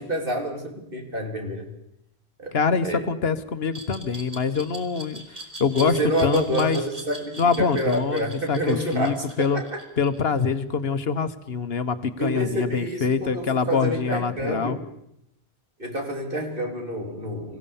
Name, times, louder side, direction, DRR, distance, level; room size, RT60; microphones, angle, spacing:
voice 1, 0.0-1.7 2.4-2.5 2.8-3.0 5.8-9.8 12.2-14.8 15.8-17.6, right 1 dB, 60° right, 2 dB, 3.5 m, -28 dB
voice 2, 2.5-5.2 5.6-6.8 7.4-9.6 10.0-14.8, left 5 dB, 70° left, 10 dB, 1.4 m, -25 dB
Glass, 3.7-10.6, right 2 dB, 35° right, 3.6 m, -40 dB
25.5 x 16.0 x 7.1 m, 0.78 s
omnidirectional pair, 1.1 m